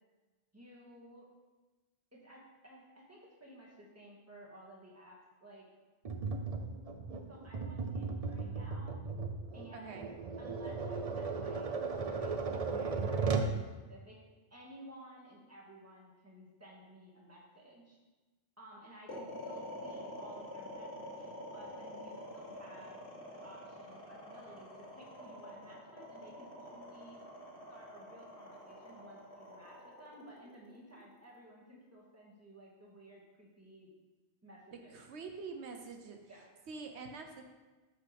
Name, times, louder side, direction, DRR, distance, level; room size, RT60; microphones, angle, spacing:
voice 1, 0.5-1.3 2.1-5.7 7.3-9.0 9.5-10.1 10.4-13.6 13.9-14.2 14.5-18.0 18.6-23.0 23.3-27.2 27.7-33.9 34.4-35.0 36.3-36.5, right 1 dB, 15° right, -4 dB, 1.9 m, -55 dB
Tap, 6.1-13.6, right 4 dB, 40° right, 0.7 m, -36 dB
voice 2, 9.7-10.1 34.7-36.2 36.7-37.4, right 4 dB, 85° right, 4 dB, 1.1 m, -45 dB
sound 1, 19.1-31.4, left 1 dB, 70° left, 2.4 m, -47 dB
13.0 x 5.8 x 3.5 m, 1.2 s
omnidirectional pair, 1.1 m